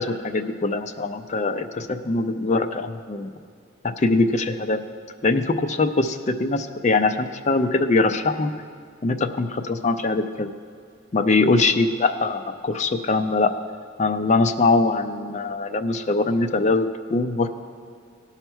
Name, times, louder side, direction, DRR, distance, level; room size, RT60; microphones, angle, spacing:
voice 1, 0.0-3.3 3.8-4.8 5.2-8.5 9.0-10.5 11.1-13.5 14.0-17.5, left 3 dB, 35° left, 7 dB, 0.5 m, -22 dB
17.0 x 5.7 x 4.5 m, 2.2 s
head